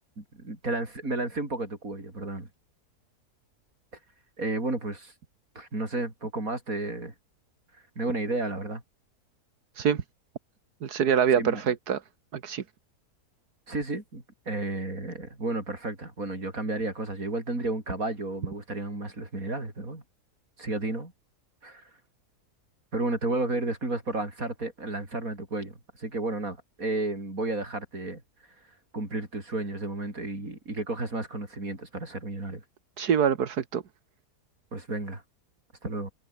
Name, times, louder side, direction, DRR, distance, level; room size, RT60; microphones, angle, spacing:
voice 1, 0.2-2.5 4.4-5.1 5.6-7.1 8.0-8.8 11.4-11.6 13.7-20.0 20.6-21.1 21.6-21.8 22.9-28.2 28.9-32.6 34.7-35.2 35.8-36.1, right 2 dB, 60° right, 6.1 m, -32 dB
voice 2, 10.8-12.0 12.3-12.6 33.0-33.8, right 8 dB, 80° right, 2.0 m, -25 dB
omnidirectional pair, 1.7 m